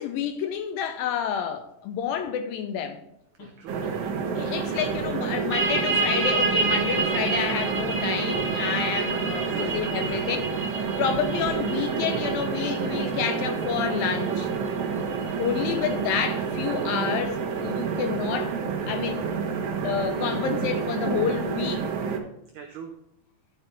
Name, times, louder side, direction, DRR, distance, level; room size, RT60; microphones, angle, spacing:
voice 1, 0.0-3.0 4.4-10.5 11.0-14.5 15.4-18.5 18.9-19.2 19.8-21.9, left 8 dB, 80° left, 2.2 m, -29 dB
sound 1, 3.4-3.5 3.8-4.1 4.5-5.2 5.5-5.9 6.2-6.9 7.2-7.6 7.9-8.6 9.0-9.3 9.6-10.3, left 3 dB, 60° left, 2.8 m, -44 dB
voice 2, 3.4-3.9 9.5-10.3 14.9-15.3 22.5-22.9, right 6 dB, 90° right, 1.7 m, -42 dB
sound 2, 3.7-22.2, right 6 dB, 65° right, 2.0 m, -29 dB
sound 3, 5.5-16.9, right 3 dB, 10° right, 2.0 m, -30 dB
12.0 x 5.2 x 4.4 m
omnidirectional pair, 4.5 m